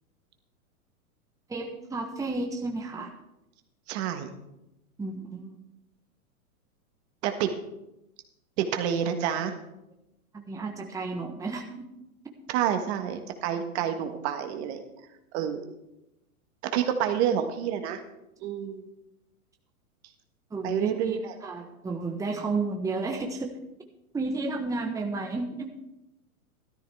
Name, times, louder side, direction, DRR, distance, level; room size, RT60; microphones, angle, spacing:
voice 1, 1.5-3.1 5.0-5.6 10.3-11.8 20.5-23.5 24.1-25.7, right 3 dB, 5° right, 2 dB, 1.2 m, -32 dB
voice 2, 3.9-4.3 7.2-7.5 8.6-9.6 12.5-14.8 15.3-15.6 16.7-18.0 18.4-18.9 20.6-21.3, right 9 dB, 45° right, 7 dB, 1.5 m, -28 dB
14.0 x 13.0 x 3.5 m, 0.90 s
hypercardioid pair, 115°, 44 cm